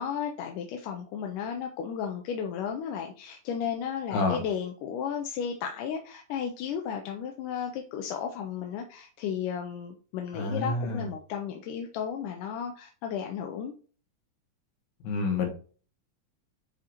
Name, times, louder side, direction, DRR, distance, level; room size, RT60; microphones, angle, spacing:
voice 1, 0.0-13.7, left 7 dB, 80° left, 4 dB, 2.2 m, -34 dB
voice 2, 10.3-11.1 15.0-15.5, left 3 dB, 65° left, 2 dB, 2.7 m, -28 dB
9.8 x 3.8 x 2.9 m, 0.40 s
omnidirectional pair, 3.8 m